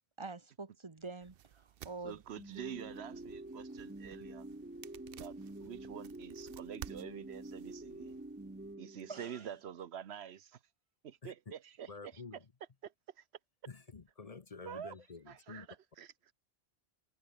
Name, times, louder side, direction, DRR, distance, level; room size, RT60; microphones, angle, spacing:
voice 1, 0.2-2.2 9.1-9.4, right 3 dB, 30° right, 1.1 m, -46 dB
sound 1, 1.2-8.8, right 11 dB, 65° right, 0.8 m, -55 dB
voice 2, 2.0-4.5 5.2-8.2 8.8-10.6 11.0-12.2 12.8-13.2 14.6-14.9 15.3-16.3, right 9 dB, 85° right, 1.1 m, -47 dB
sound 2, 2.4-9.5, right 2 dB, 10° right, 0.8 m, -48 dB
voice 3, 11.2-11.5 11.9-12.4 13.7-15.7, left 4 dB, 40° left, 0.9 m, -49 dB
omnidirectional pair, 1.1 m